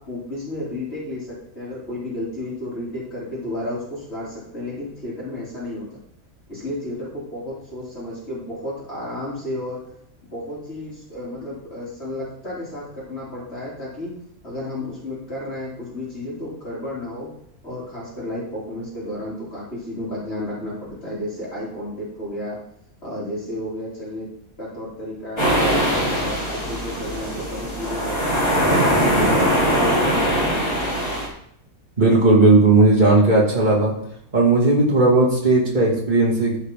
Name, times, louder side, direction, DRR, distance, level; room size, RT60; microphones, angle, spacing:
voice 1, 0.0-5.9 6.5-9.8 10.2-14.1 14.4-17.3 17.6-22.6 23.0-24.3 24.6-28.2 28.5-29.4 29.7-30.7, left 1 dB, 45° left, -7 dB, 3.3 m, -32 dB
sound 1, 25.4-31.3, equal, 20° left, 3.3 m, -21 dB
voice 2, 32.0-33.9 34.3-36.6, right 2 dB, 30° right, -3 dB, 2.5 m, -16 dB
13.5 x 5.8 x 3.7 m, 0.72 s
omnidirectional pair, 1.5 m